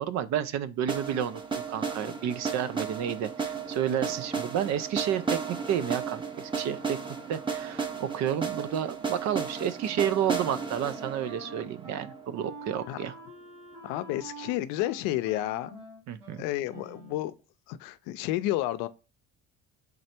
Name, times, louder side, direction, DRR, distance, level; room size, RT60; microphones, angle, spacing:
voice 1, 0.0-7.0 7.3-13.2 16.1-16.4, right 9 dB, 60° right, 0.6 m, -31 dB
sound 1, 0.9-12.8, right 5 dB, 15° right, 0.8 m, -34 dB
Wind instrument woodwind instrument, 9.8-17.3, right 2 dB, 85° right, 1.8 m, -47 dB
voice 2, 13.8-15.8 16.4-17.3 17.7-18.9, left 15 dB, 90° left, 0.5 m, -31 dB
3.8 x 3.3 x 4.3 m
cardioid pair, 100°, 31 cm